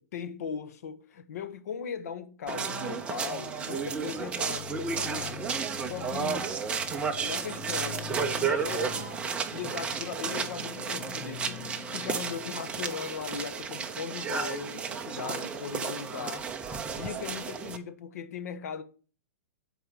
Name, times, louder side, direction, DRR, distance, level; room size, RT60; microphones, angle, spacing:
voice 1, 0.1-5.4 5.8-6.5 7.2-9.1 9.5-11.6 11.9-16.5 16.9-18.8, left 7 dB, 65° left, 1.3 m, -38 dB
sound 1, 2.5-17.8, right 6 dB, 10° right, 0.8 m, -33 dB
sound 2, 3.8-12.9, left 12 dB, 30° left, 0.8 m, -46 dB
11.0 x 4.7 x 6.4 m
hypercardioid pair, 150°, 9 cm